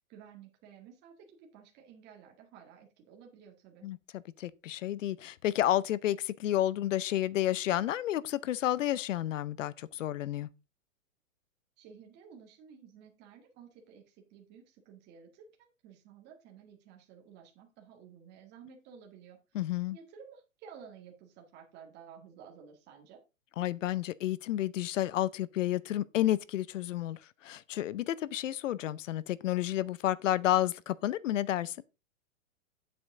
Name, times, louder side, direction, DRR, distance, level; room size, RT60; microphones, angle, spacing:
voice 1, 0.1-3.9 11.8-19.6 19.9-23.2, right 7 dB, 25° right, 1.9 m, -54 dB
voice 2, 3.8-10.5 19.5-20.0 23.6-31.8, left 13 dB, 65° left, 0.7 m, -31 dB
8.7 x 8.0 x 3.7 m
hypercardioid pair, 150°, 40 cm